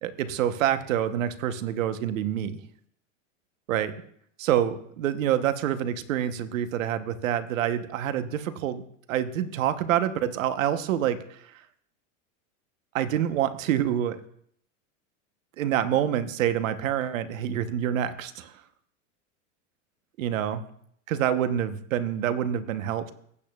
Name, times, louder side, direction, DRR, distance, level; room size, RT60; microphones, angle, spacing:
voice 1, 0.0-2.6 3.7-3.9 4.4-8.8 9.1-11.4 12.9-14.2 15.6-18.5 20.2-20.6 21.1-23.1, right 10 dB, 90° right, 11 dB, 1.0 m, -27 dB
15.5 x 8.5 x 2.3 m, 0.67 s
supercardioid pair, 135°, 38 cm